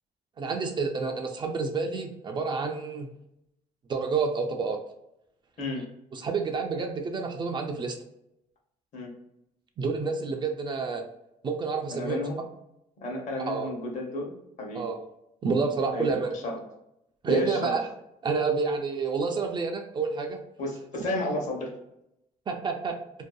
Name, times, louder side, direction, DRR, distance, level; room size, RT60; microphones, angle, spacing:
voice 1, 0.4-3.1 3.9-4.8 6.1-8.0 9.8-11.0 11.4-12.2 13.5-13.7 14.7-15.0 15.4-16.3 17.2-17.9 18.2-20.4 22.5-23.0, right 4 dB, 35° right, 4 dB, 0.3 m, -29 dB
voice 2, 11.9-12.4 13.0-14.9 15.9-16.0 16.4-16.6 17.3-17.8 20.6-21.7, left 2 dB, 60° left, 0 dB, 0.9 m, -32 dB
2.6 x 2.2 x 2.3 m, 0.82 s
cardioid pair, 130°, 14 cm